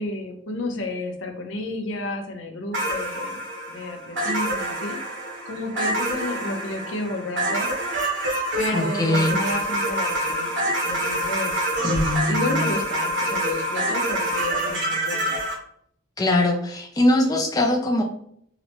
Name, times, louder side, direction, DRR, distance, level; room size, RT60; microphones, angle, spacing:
voice 1, 0.0-3.4 3.7-5.0 5.5-7.7 8.6-11.7 12.3-15.4, left 2 dB, 80° left, 4 dB, 0.6 m, -31 dB
sound 1, 2.7-15.5, right 1 dB, 70° right, 1.0 m, -26 dB
voice 2, 8.7-9.4 11.8-12.6 16.2-18.0, left 1 dB, 20° left, 1 dB, 0.4 m, -22 dB
3.8 x 2.1 x 2.9 m, 0.67 s
head